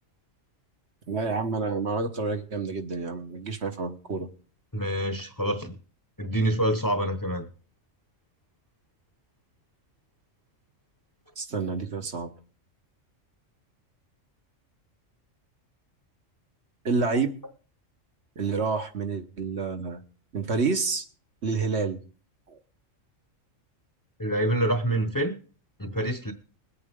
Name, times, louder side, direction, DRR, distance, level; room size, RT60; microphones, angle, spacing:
voice 1, 1.1-4.3 11.4-12.3 16.8-17.4 18.3-20.0 20.3-21.0 21.4-22.0 22.5-22.6, right 4 dB, 60° right, 6 dB, 1.5 m, -28 dB
voice 2, 4.7-5.8 6.2-7.5 24.2-25.3 25.8-26.3, right 1 dB, 15° left, 8 dB, 1.1 m, -26 dB
21.5 x 8.7 x 3.7 m, 0.39 s
omnidirectional pair, 1.3 m